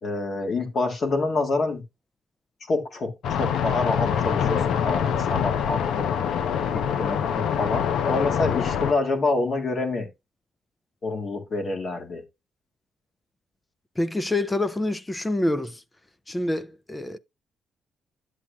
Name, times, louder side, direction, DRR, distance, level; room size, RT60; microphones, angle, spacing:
voice 1, 0.0-1.8 2.7-3.1 3.4-6.1 6.7-10.1 11.0-12.2, left 3 dB, 50° left, 1.8 m, -27 dB
sound 1, 3.2-8.9, left 8 dB, 75° left, 0.7 m, -25 dB
voice 2, 14.0-15.8 16.3-17.2, left 1 dB, 15° left, 0.4 m, -26 dB
10.0 x 7.4 x 2.3 m
cardioid pair, 90°, 0 cm